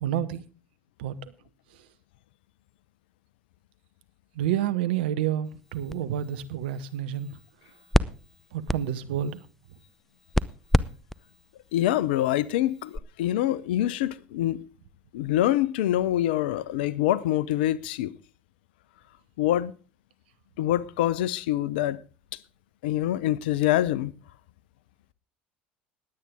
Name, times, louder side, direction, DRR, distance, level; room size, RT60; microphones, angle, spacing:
voice 1, 0.0-0.4 1.0-1.1 4.4-7.3 8.5-9.4, right 10 dB, 75° right, 1.1 m, -29 dB
sound 1, 5.4-13.0, left 1 dB, 5° left, 0.7 m, -31 dB
voice 2, 11.7-14.6 15.1-18.1 19.4-19.7 20.6-22.0 22.8-24.1, left 13 dB, 75° left, 0.7 m, -25 dB
20.5 x 8.8 x 3.6 m
hypercardioid pair, 70°, 5 cm